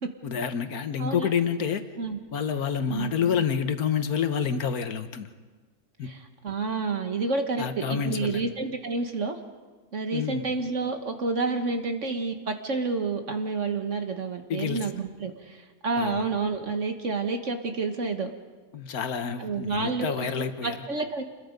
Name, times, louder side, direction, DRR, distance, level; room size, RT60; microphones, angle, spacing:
voice 1, 0.2-1.8 2.3-5.3 6.0-6.1 7.6-8.5 10.1-10.4 14.5-14.8 16.0-16.3 18.7-20.8, left 7 dB, 90° left, 9 dB, 1.6 m, -28 dB
voice 2, 1.0-1.3 2.0-2.2 2.9-3.1 6.0-9.4 9.9-18.3 19.4-20.3 20.6-21.2, right 4 dB, 55° right, 6 dB, 1.7 m, -29 dB
28.5 x 21.5 x 5.2 m, 1.4 s
omnidirectional pair, 1.5 m